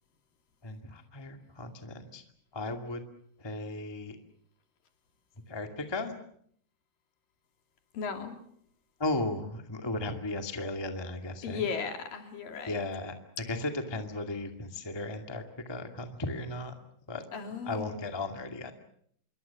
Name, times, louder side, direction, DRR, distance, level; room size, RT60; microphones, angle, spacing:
voice 1, 0.6-2.2 2.5-3.0 3.4-4.2 5.5-6.1 9.0-11.7 12.6-13.1 13.5-16.7 17.1-17.2 17.7-18.7, left 2 dB, 20° left, 5 dB, 0.7 m, -35 dB
voice 2, 7.9-8.3 11.4-12.7 17.3-18.0, left 6 dB, 60° left, 5 dB, 4.4 m, -36 dB
27.5 x 23.5 x 7.1 m, 0.67 s
omnidirectional pair, 4.8 m